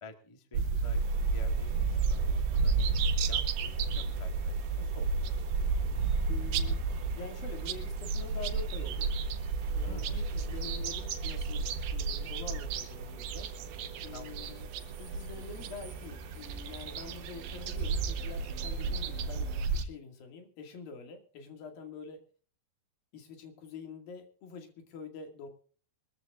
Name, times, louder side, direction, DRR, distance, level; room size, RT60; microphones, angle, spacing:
voice 1, 0.0-1.0 1.3-2.9 3.3-5.4 9.8-10.1 14.1-14.4, left 2 dB, 35° left, 5 dB, 0.5 m, -50 dB
sound 1, 0.5-19.9, right 4 dB, 80° right, 2.8 m, -32 dB
sound 2, 0.9-19.7, right 8 dB, 65° right, 3.4 m, -52 dB
voice 2, 6.3-6.8 7.1-9.1 9.7-13.5 14.0-14.7 15.0-22.2 23.1-25.5, left 5 dB, 80° left, 4 dB, 4.1 m, -46 dB
23.0 x 14.0 x 2.5 m, 0.41 s
omnidirectional pair, 4.1 m